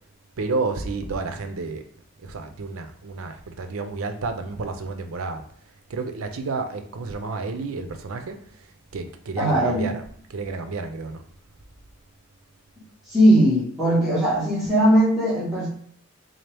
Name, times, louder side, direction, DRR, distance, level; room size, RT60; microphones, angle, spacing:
voice 1, 0.4-1.8 2.2-5.4 5.9-10.0 10.3-11.2, right 3 dB, 85° right, 6 dB, 0.5 m, -31 dB
voice 2, 9.4-9.9 13.1-15.7, right 1 dB, ahead, -10 dB, 1.4 m, -19 dB
3.7 x 2.8 x 3.3 m, 0.64 s
head